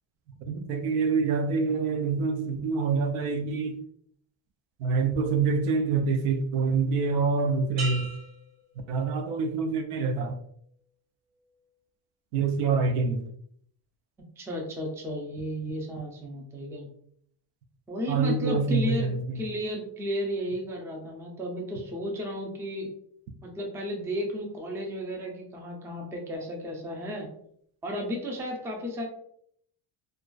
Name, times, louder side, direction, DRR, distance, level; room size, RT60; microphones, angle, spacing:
voice 1, 0.5-3.8 4.8-8.1 8.9-10.4 12.3-13.2 18.1-19.4, right 4 dB, 80° right, 6 dB, 0.6 m, -26 dB
sound 1, 7.8-9.6 10.1-10.5, right 2 dB, 65° right, 1.2 m, -40 dB
voice 2, 14.4-16.9 17.9-22.9 23.4-27.3 27.8-29.1, equal, 5° right, 1 dB, 0.3 m, -33 dB
2.3 x 2.3 x 2.2 m, 0.67 s
cardioid pair, 100°, 50 cm